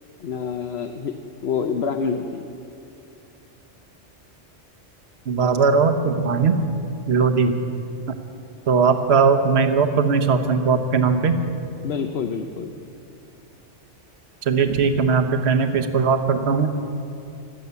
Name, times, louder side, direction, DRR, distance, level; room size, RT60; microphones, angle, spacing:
voice 1, 0.2-1.1 1.4-2.4 11.8-12.7, left 6 dB, 60° left, 5 dB, 0.9 m, -27 dB
voice 2, 5.3-6.7 7.1-7.5 8.1-8.2 8.7-11.6 14.4-16.7, right 5 dB, 60° right, 7 dB, 1.2 m, -19 dB
17.0 x 12.5 x 6.9 m, 2.7 s
omnidirectional pair, 1.2 m